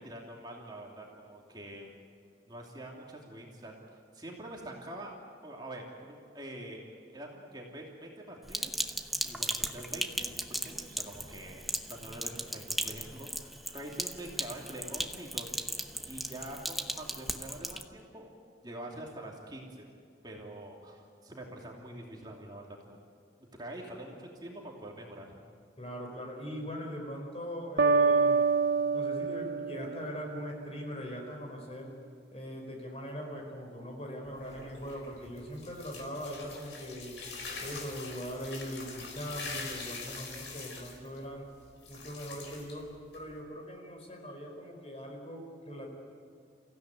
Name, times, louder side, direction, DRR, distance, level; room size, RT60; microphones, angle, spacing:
voice 1, 0.0-1.9 2.5-5.1 5.4-8.8 9.2-18.3 18.6-19.9 20.2-23.0 23.6-25.3, right 1 dB, 25° right, -1 dB, 2.9 m, -45 dB
Sink (filling or washing), 8.5-17.8, equal, ahead, 0.9 m, -37 dB
voice 2, 25.8-28.5 28.9-31.9 32.3-37.2 37.6-41.5 41.9-42.9 43.1-45.9, equal, 35° left, 1 dB, 5.1 m, -41 dB
sound 1, 27.8-30.6, right 4 dB, 65° right, 0.9 m, -27 dB
sound 2, 34.2-43.4, left 4 dB, 90° left, 4.5 m, -44 dB
28.5 x 16.0 x 9.4 m, 2.3 s
head